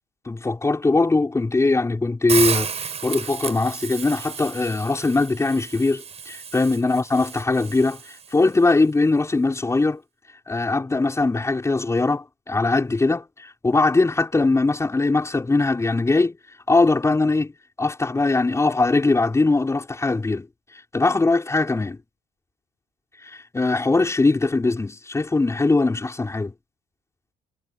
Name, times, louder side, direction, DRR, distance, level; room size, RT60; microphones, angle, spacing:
voice 1, 0.3-2.7 3.0-8.0 8.3-10.0 10.5-16.4 16.7-17.5 17.8-20.5 20.9-22.0 23.3-26.5, left 3 dB, 15° left, 5.2 m, -21 dB
Hiss, 2.3-8.4, right 6 dB, 40° right, 6.2 m, -31 dB
cardioid pair, 110°, 17 cm